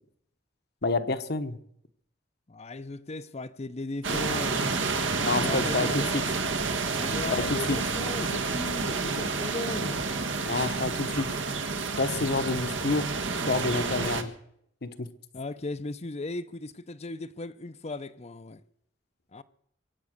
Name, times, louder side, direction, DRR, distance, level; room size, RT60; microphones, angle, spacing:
voice 1, 0.8-1.6 5.2-6.2 7.3-7.8 10.4-11.4 12.0-13.1 13.5-14.3 14.8-15.1, left 3 dB, 55° left, 1.1 m, -28 dB
voice 2, 2.5-5.0 5.3-6.3 6.9-10.0 15.3-18.6 19.3-19.4, left 2 dB, 35° left, 0.7 m, -37 dB
sound 1, 4.0-14.2, right 4 dB, 75° right, 1.5 m, -29 dB
24.0 x 8.6 x 6.6 m
head